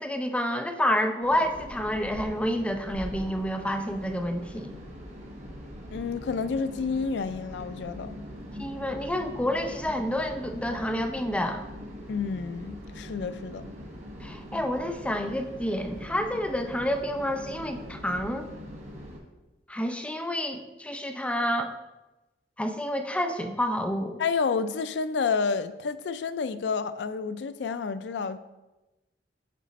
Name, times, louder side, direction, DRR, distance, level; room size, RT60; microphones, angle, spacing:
voice 1, 0.0-4.7 8.6-11.6 14.2-18.5 19.7-21.7 22.6-24.2, equal, 5° left, 5 dB, 0.4 m, -29 dB
sound 1, 1.2-19.2, equal, 40° right, 1.3 m, -42 dB
voice 2, 5.9-8.1 12.1-13.7 24.2-28.4, left 5 dB, 75° left, 13 dB, 0.4 m, -30 dB
7.6 x 4.2 x 4.0 m, 1.0 s
head